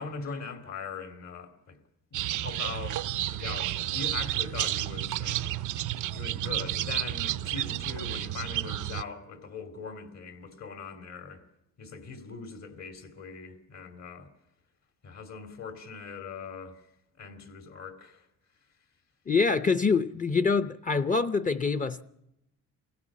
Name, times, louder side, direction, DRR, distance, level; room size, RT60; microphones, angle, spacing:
voice 1, 0.0-1.8 2.1-3.0 3.3-5.6 6.1-11.4 11.8-14.3 15.0-16.8 17.2-18.3, left 5 dB, 60° left, 2.8 m, -41 dB
sound 1, 2.1-9.0, right 13 dB, 80° right, 0.7 m, -31 dB
voice 2, 19.3-22.0, left 4 dB, 25° left, 0.7 m, -25 dB
23.0 x 16.5 x 7.4 m
cardioid pair, 90°, 30 cm